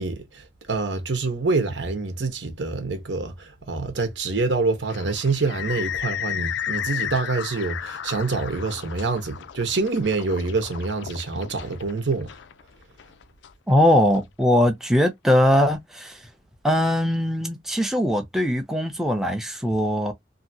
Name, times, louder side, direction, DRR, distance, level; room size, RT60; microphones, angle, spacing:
voice 1, 0.0-12.3, right 3 dB, 90° right, 1.0 m, -26 dB
sound 1, 4.9-14.2, left 9 dB, 85° left, 0.4 m, -34 dB
voice 2, 13.7-16.2 16.6-20.1, left 1 dB, ahead, 0.5 m, -21 dB
2.7 x 2.6 x 2.7 m
head